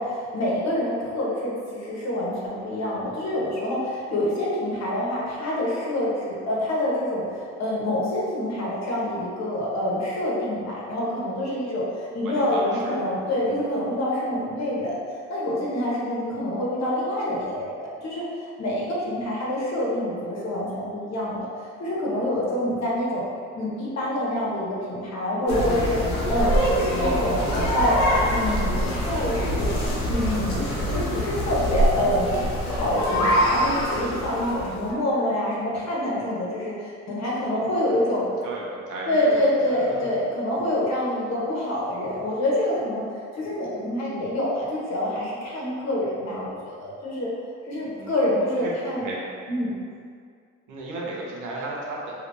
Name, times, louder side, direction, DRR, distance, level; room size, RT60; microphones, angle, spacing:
voice 1, 0.0-15.0 15.3-21.5 21.8-23.2 23.5-28.0 28.3-32.3 32.7-38.2 39.1-43.0 43.3-47.3 47.6-49.0 49.5-49.7, left 1 dB, 60° left, -5 dB, 1.0 m, -26 dB
voice 2, 12.2-13.6 35.1-35.3 38.4-39.4 39.9-40.0 48.0-48.3 48.6-48.7 49.0-49.2 50.7-52.1, right 2 dB, 80° right, -4 dB, 0.8 m, -35 dB
sound 1, 25.5-34.9, equal, 90° left, 0.9 m, -24 dB
3.3 x 2.9 x 2.6 m, 2.2 s
cardioid pair, 90°, 30 cm